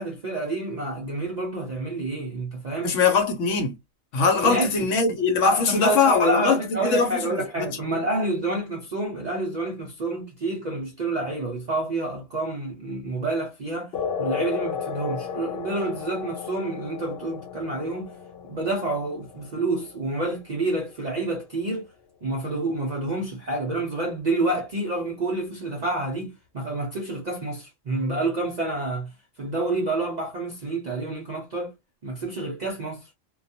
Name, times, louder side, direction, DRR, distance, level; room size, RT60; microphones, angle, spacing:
voice 1, 0.0-2.9 4.4-4.7 5.5-13.9 14.2-18.1 18.4-21.9 22.2-29.1 29.4-31.7 32.0-33.1, right 2 dB, 60° right, 0.4 m, -28 dB
voice 2, 2.8-3.8 4.1-7.3 7.6-7.7, left 4 dB, 75° left, 1.0 m, -21 dB
sound 1, 13.9-20.9, left 7 dB, 60° left, 0.7 m, -34 dB
2.2 x 2.2 x 2.6 m
omnidirectional pair, 1.4 m